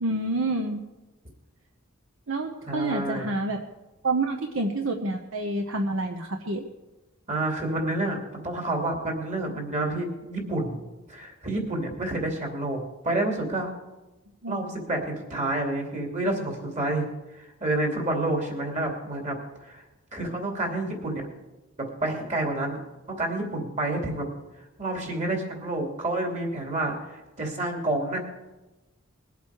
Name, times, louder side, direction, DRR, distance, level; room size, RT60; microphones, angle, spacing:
voice 1, 0.0-0.8 2.3-3.6 4.0-6.6 14.4-14.6, right 2 dB, 70° right, 4 dB, 1.0 m, -28 dB
voice 2, 2.7-3.3 7.3-8.2 8.4-10.8 11.1-12.8 13.0-13.7 14.5-17.0 17.4-19.4 19.6-19.8 20.1-21.2 22.0-22.8 23.1-24.3 24.8-28.2, right 2 dB, 35° right, 2 dB, 2.8 m, -29 dB
21.0 x 8.1 x 4.8 m, 1.1 s
head